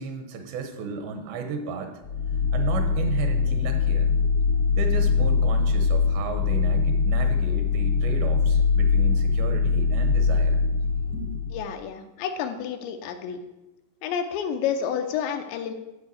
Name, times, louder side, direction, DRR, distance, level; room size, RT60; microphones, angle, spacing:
voice 1, 0.0-2.0 2.5-4.1 4.8-10.6 11.1-11.4, right 5 dB, 75° right, 6 dB, 3.3 m, -34 dB
sound 1, 2.0-11.7, left 5 dB, 55° left, 1.3 m, -22 dB
voice 2, 11.5-13.4 14.0-15.7, left 8 dB, 80° left, 6 dB, 2.9 m, -29 dB
12.5 x 4.6 x 7.7 m, 0.98 s
omnidirectional pair, 5.2 m